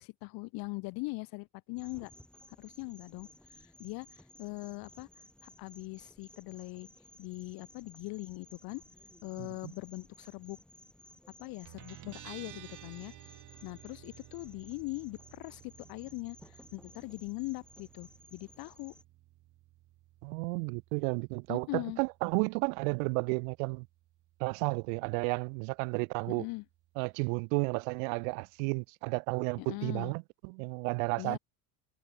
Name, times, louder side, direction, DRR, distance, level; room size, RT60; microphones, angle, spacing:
voice 1, 0.0-2.1 2.6-3.3 3.8-5.1 5.4-6.9 7.2-8.8 9.2-10.6 11.4-13.1 13.6-18.9 21.5-22.0 26.3-26.6 29.6-30.1 31.2-31.4, left 25 dB, 60° left, 1.9 m, -41 dB
sound 1, 1.8-19.0, left 1 dB, ahead, 3.3 m, -58 dB
voice 2, 9.4-9.7 20.2-23.9 24.4-26.5 27.0-31.4, right 39 dB, 75° right, 0.9 m, -32 dB
Guitar, 11.7-28.9, right 16 dB, 45° right, 5.7 m, -56 dB
cardioid pair, 155°, 41 cm